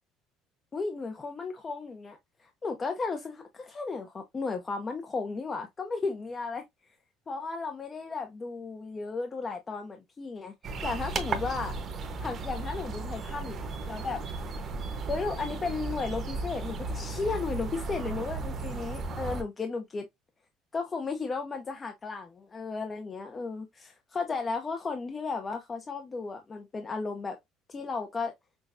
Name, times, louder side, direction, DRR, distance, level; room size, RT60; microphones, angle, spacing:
voice 1, 0.7-6.6 7.3-10.5 10.8-11.7 12.2-14.2 15.1-20.0 20.7-27.4 27.7-28.3, left 4 dB, 25° left, 0.7 m, -34 dB
sound 1, 10.6-19.4, right 3 dB, 35° right, 0.9 m, -35 dB
6.1 x 2.3 x 2.5 m
cardioid pair, 135°, 0 cm